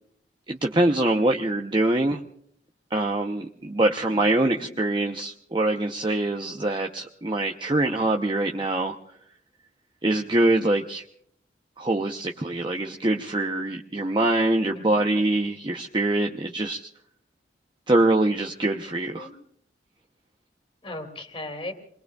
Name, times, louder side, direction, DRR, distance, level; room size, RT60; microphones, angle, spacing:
voice 1, 0.5-2.2 2.9-9.0 10.0-11.0 11.8-16.9 17.9-19.3, right 2 dB, 25° right, 1 dB, 0.7 m, -24 dB
voice 2, 4.1-4.7 14.8-15.2 19.2-19.3 20.8-21.7, left 2 dB, 30° left, 4 dB, 2.3 m, -38 dB
28.5 x 21.5 x 2.3 m, 0.64 s
head